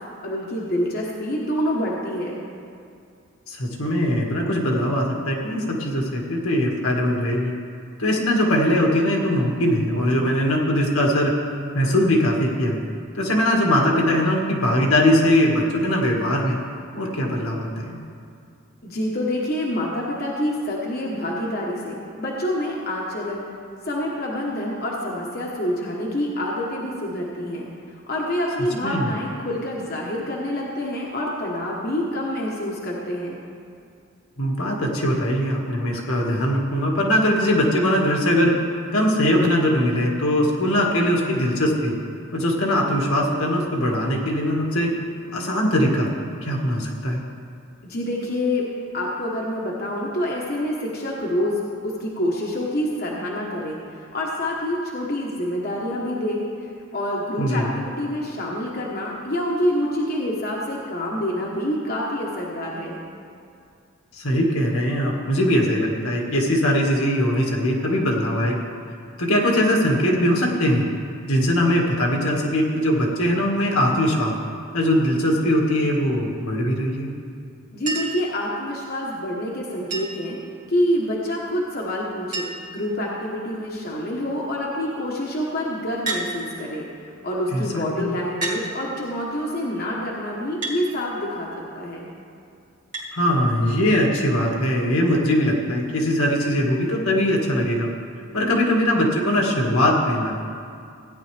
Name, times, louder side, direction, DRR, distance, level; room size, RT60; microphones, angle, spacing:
voice 1, 0.2-2.4 18.8-23.5 23.8-27.7 28.1-33.4 47.8-48.6 48.9-63.0 77.7-80.4 80.7-91.5 91.7-92.1, left 1 dB, 45° left, -3 dB, 1.1 m, -27 dB
voice 2, 3.5-7.5 8.0-11.3 11.7-12.8 13.1-16.6 16.9-18.0 28.8-29.1 34.4-38.5 38.9-41.9 42.3-44.9 45.3-46.1 46.4-47.2 57.4-57.7 64.1-68.6 69.2-70.8 71.3-74.3 74.7-77.1 87.5-88.1 93.1-97.9 98.3-100.4, equal, 75° left, -1 dB, 1.8 m, -21 dB
Chink clink, 77.9-78.3 79.9-80.3 81.7-81.8 82.0-82.1 82.3-82.8 83.5-83.9 86.0-86.3 87.4-87.5 88.4-88.6 90.6-90.8 92.9-93.1 94.5-94.6, right 2 dB, 35° right, 1.9 m, -29 dB
16.5 x 10.0 x 3.4 m, 2.4 s
head